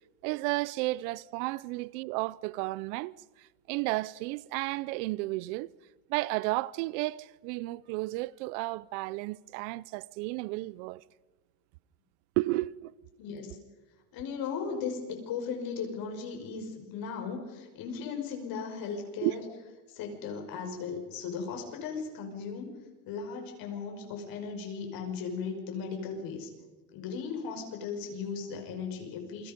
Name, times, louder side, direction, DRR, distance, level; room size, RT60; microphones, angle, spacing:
voice 1, 0.2-5.7 6.1-11.0 12.4-12.9 19.2-19.3, right 21 dB, 75° right, 0.7 m, -33 dB
voice 2, 14.1-19.4 19.9-22.8 23.1-26.5 26.9-29.5, left 5 dB, 50° left, 5.6 m, -37 dB
28.5 x 23.5 x 5.2 m
cardioid pair, 165°, 44 cm